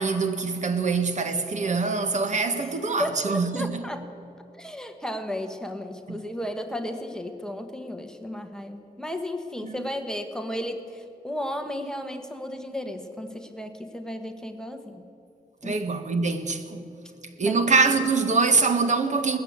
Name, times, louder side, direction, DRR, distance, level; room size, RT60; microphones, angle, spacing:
voice 1, 0.0-3.8 6.1-6.2 9.6-9.9 15.6-16.9 17.4-19.4, right 4 dB, 50° right, 1.5 m, -24 dB
voice 2, 3.0-4.1 4.6-15.0 15.6-15.7 17.4-17.6, left 1 dB, 5° left, 1.3 m, -34 dB
19.5 x 15.0 x 9.5 m
wide cardioid pair, 175°, 16 cm